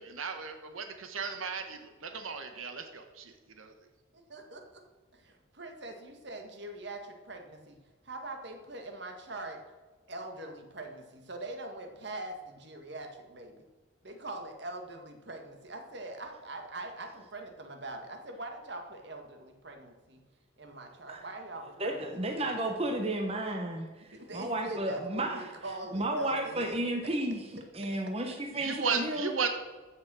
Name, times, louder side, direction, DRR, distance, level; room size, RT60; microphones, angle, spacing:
voice 1, 0.0-3.7 28.5-29.5, right 5 dB, 85° right, 7 dB, 1.3 m, -35 dB
voice 2, 4.1-4.8 5.1-7.8 8.0-9.6 10.1-13.6 14.0-20.2 20.6-22.8 24.1-26.7, right 2 dB, 55° right, 4 dB, 1.9 m, -43 dB
voice 3, 21.8-25.4 25.9-27.4 27.7-29.4, right 1 dB, 30° right, 4 dB, 1.0 m, -32 dB
14.5 x 6.4 x 6.3 m, 1.3 s
head